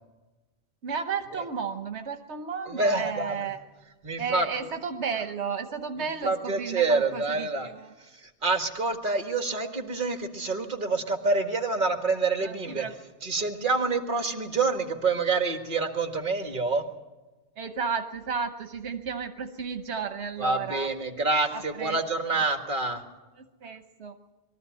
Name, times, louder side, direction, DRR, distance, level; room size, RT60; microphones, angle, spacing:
voice 1, 0.8-3.6 4.2-7.9 12.4-12.9 17.6-20.9 21.5-22.0 22.3-22.4 23.4-24.1, right 6 dB, 85° right, 7 dB, 1.3 m, -33 dB
voice 2, 2.7-3.4 4.0-4.5 6.2-7.7 8.2-12.9 13.2-16.8 20.4-23.0, right 3 dB, 50° right, 5 dB, 1.9 m, -27 dB
22.5 x 13.5 x 9.5 m, 1.2 s
omnidirectional pair, 1.1 m